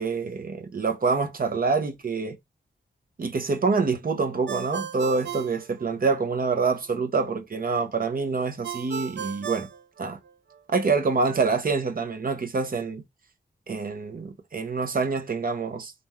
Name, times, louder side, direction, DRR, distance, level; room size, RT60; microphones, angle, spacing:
voice 1, 0.0-2.4 3.2-9.7 10.0-10.2 10.7-13.0 13.7-15.9, right 4 dB, 50° right, 0.9 m, -26 dB
Ringtone, 4.5-6.4 8.6-10.6, right 8 dB, 70° right, 0.4 m, -36 dB
4.3 x 2.6 x 3.6 m
wide cardioid pair, 115°, 19 cm